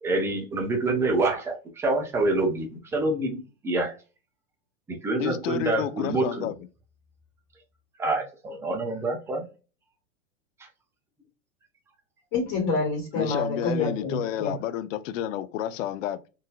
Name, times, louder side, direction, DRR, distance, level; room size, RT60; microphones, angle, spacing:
voice 1, 0.0-4.0 4.9-6.5 8.0-9.5 10.6-10.7, right 2 dB, 5° right, 0.4 m, -27 dB
voice 2, 5.2-6.6 13.1-16.2, left 11 dB, 60° left, 0.6 m, -30 dB
voice 3, 12.3-14.5, left 3 dB, 35° left, 1.2 m, -27 dB
3.9 x 2.5 x 2.2 m
hypercardioid pair, 125°, 44 cm